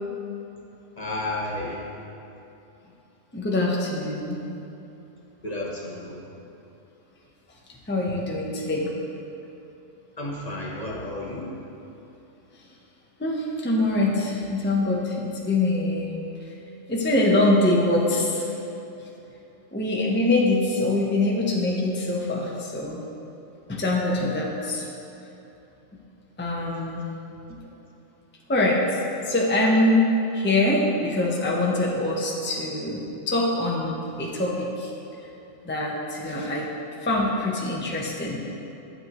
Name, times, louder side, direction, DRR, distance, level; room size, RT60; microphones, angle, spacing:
voice 1, 1.0-2.0 5.4-6.2 10.2-11.7 26.5-26.6 27.6-27.7, left 1 dB, 35° left, -4 dB, 0.9 m, -32 dB
voice 2, 3.3-4.4 7.9-8.9 13.2-16.1 16.9-18.5 19.7-23.0 23.7-24.9 26.4-27.1 27.5-27.6 28.5-28.8 29.2-30.1 30.3-34.9 35.6-36.7 37.0-38.4, left 2 dB, 10° left, -3 dB, 0.7 m, -24 dB
11.5 x 7.9 x 3.0 m, 2.9 s
omnidirectional pair, 1.4 m